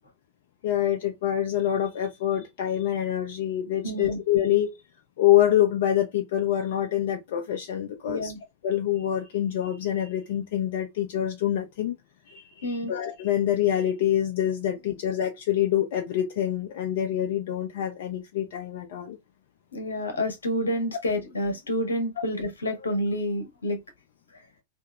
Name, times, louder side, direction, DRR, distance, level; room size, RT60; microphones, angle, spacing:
voice 1, 0.6-4.8 5.2-8.3 8.6-11.9 12.3-19.2, left 11 dB, 55° left, 0.4 m, -26 dB
voice 2, 3.8-4.2 8.1-8.4 12.6-12.9 19.7-23.8, left 1 dB, 75° left, 0.8 m, -28 dB
2.8 x 2.7 x 2.2 m
figure-of-eight pair, 90°, 0 cm